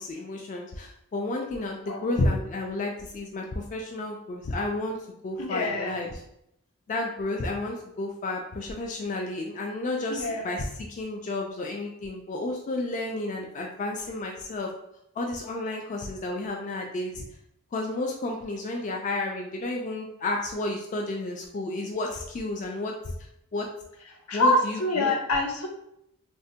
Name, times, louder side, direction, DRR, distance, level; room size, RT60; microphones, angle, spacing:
voice 1, 0.0-5.0 5.2-6.2 6.9-14.7 15.2-17.2 17.7-22.9 23.5-23.7 24.3-25.1, left 2 dB, 35° left, 1 dB, 0.3 m, -31 dB
voice 2, 5.4-6.0 10.1-10.4 24.3-25.7, left 2 dB, 75° left, 2 dB, 0.6 m, -26 dB
3.3 x 2.1 x 2.7 m, 0.79 s
head